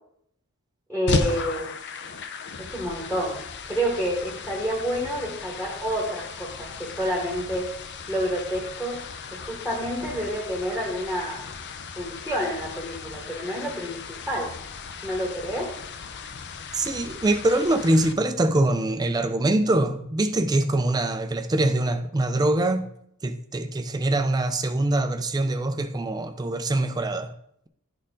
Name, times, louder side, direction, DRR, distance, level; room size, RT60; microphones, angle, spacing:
voice 1, 0.9-1.7 2.6-3.4 3.7-7.7 8.1-9.0 9.3-11.4 12.0-14.5 15.0-15.8, equal, 10° left, 1.2 m, -29 dB
sound 1, 1.1-18.1, left 4 dB, 50° left, 0.6 m, -36 dB
voice 2, 16.7-22.9 23.2-27.3, right 1 dB, 20° right, 0.4 m, -24 dB
11.5 x 4.3 x 3.7 m
head